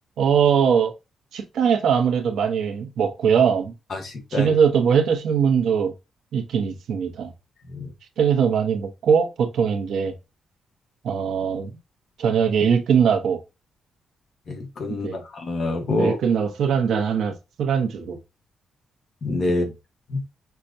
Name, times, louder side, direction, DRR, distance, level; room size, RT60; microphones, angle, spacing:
voice 1, 0.2-0.9 1.3-3.7 4.3-5.9 6.3-7.3 8.2-10.1 11.0-11.7 12.2-13.4 14.9-15.2 15.9-17.3 17.6-18.2 19.5-19.7, right 7 dB, 75° right, 0.9 m, -21 dB
voice 2, 3.9-4.5 7.7-7.9 14.5-16.1 19.2-19.6 20.1-20.2, left 2 dB, 45° left, 1.1 m, -26 dB
5.7 x 2.3 x 2.5 m
wide cardioid pair, 155°, 0 cm